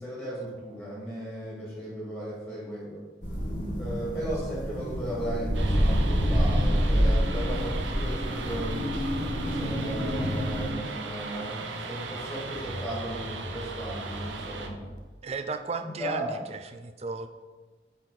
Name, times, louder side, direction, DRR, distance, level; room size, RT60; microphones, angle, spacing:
voice 1, 0.0-3.0 3.8-9.0 9.4-14.8 15.8-16.4, right 1 dB, 10° left, -6 dB, 2.3 m, -36 dB
sound 1, 3.2-10.7, equal, 45° left, 1.9 m, -27 dB
sound 2, 5.5-14.7, right 4 dB, 85° right, 0.7 m, -38 dB
sound 3, 7.9-15.0, left 1 dB, 70° left, 0.9 m, -43 dB
voice 2, 15.2-17.3, right 4 dB, 35° right, 8 dB, 0.4 m, -35 dB
8.7 x 4.2 x 4.2 m, 1.4 s
head